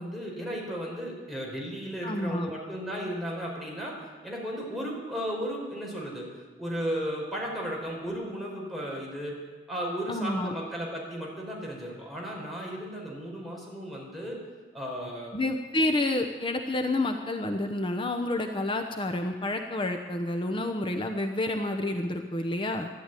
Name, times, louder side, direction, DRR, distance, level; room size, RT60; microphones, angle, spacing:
voice 1, 0.0-3.9 4.2-6.3 6.6-9.4 9.7-14.4 14.7-15.4, equal, ahead, -3 dB, 4.5 m, -35 dB
voice 2, 2.0-2.5 10.1-10.5 15.3-22.9, left 1 dB, 30° left, 4 dB, 0.9 m, -29 dB
13.5 x 11.5 x 9.2 m, 1.4 s
head